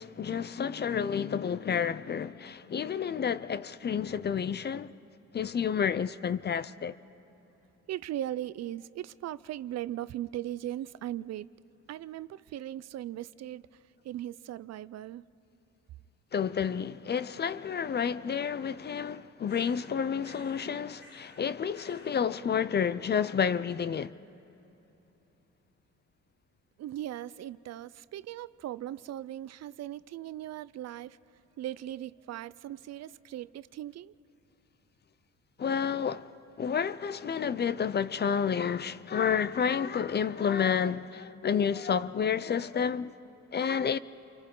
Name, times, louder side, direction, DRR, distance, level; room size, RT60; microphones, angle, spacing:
voice 1, 0.0-4.9 5.3-7.0 16.3-24.1 35.6-36.3 36.6-43.1 43.5-44.0, left 7 dB, 35° left, 0.5 m, -30 dB
voice 2, 7.9-11.5 11.9-13.6 14.0-15.2 26.8-31.2 31.6-34.1, right 12 dB, 60° right, 0.5 m, -38 dB
sound 1, 19.4-19.9 20.2-20.7 21.0-21.5 21.7-22.2, left 1 dB, 55° left, 4.5 m, -55 dB
29.0 x 24.5 x 3.8 m
cardioid pair, 90°, 30 cm